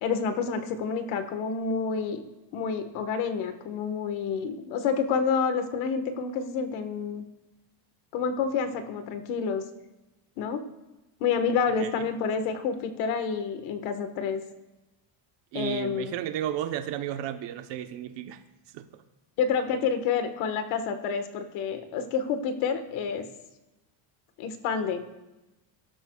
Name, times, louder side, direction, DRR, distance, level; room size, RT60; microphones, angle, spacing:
voice 1, 0.0-2.2 2.5-7.2 8.1-9.6 10.4-10.6 11.2-14.4 15.5-16.1 19.4-23.3 24.4-25.1, left 6 dB, 75° left, 8 dB, 1.6 m, -28 dB
voice 2, 15.5-18.4 18.7-19.0, right 11 dB, 60° right, 8 dB, 1.1 m, -33 dB
23.0 x 12.5 x 2.4 m, 1.0 s
cardioid pair, 175°, 47 cm